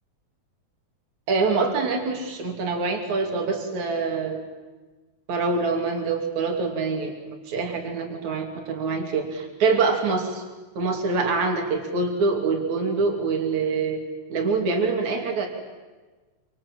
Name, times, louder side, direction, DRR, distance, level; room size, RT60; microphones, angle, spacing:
voice 1, 1.3-4.4 5.3-10.4 10.8-14.0 14.3-15.5, right 4 dB, 75° right, 3 dB, 4.2 m, -25 dB
27.0 x 26.0 x 7.7 m, 1.3 s
omnidirectional pair, 3.3 m